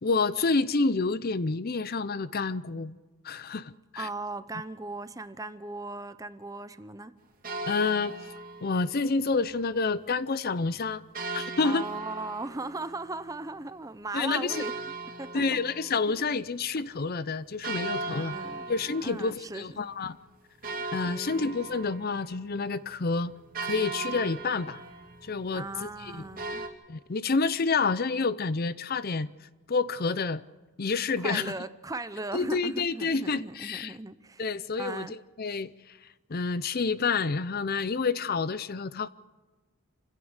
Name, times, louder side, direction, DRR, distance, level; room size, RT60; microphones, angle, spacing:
voice 1, 0.0-3.0 3.2-4.1 7.7-8.2 8.6-11.0 11.3-11.9 14.1-14.6 15.3-18.4 18.7-20.2 20.9-23.3 23.6-24.8 25.2-26.2 26.9-29.3 29.7-30.4 30.8-31.5 32.3-34.0 34.4-36.0 36.3-39.1, left 4 dB, 45° left, 0.6 m, -29 dB
voice 2, 4.0-7.1 11.6-14.7 15.2-15.4 16.1-16.2 17.8-18.7 19.0-19.8 20.7-21.4 25.5-26.7 31.2-34.5 34.7-35.1, right 2 dB, 15° right, 0.7 m, -38 dB
sound 1, 7.4-9.1 11.1-13.6 14.5-16.5 16.8-16.9 17.6-19.6 20.1-20.2 20.6-26.7, right 3 dB, 40° right, 2.8 m, -38 dB
28.0 x 16.0 x 6.6 m
head